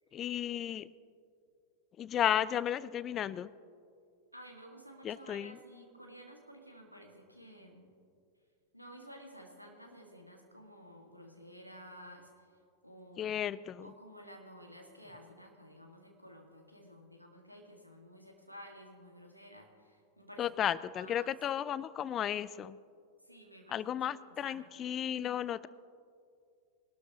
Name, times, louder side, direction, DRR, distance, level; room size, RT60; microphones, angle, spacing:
voice 1, 0.1-0.9 2.0-3.5 5.0-5.6 13.2-13.9 20.4-22.8 23.7-25.7, left 10 dB, 30° left, 19 dB, 0.4 m, -34 dB
voice 2, 4.3-7.9 8.7-12.5 12.8-13.4 13.8-21.4 23.2-23.9 24.3-24.7, equal, 90° right, 1 dB, 1.8 m, -53 dB
21.5 x 12.0 x 2.9 m, 2.3 s
figure-of-eight pair, 90°, 0 cm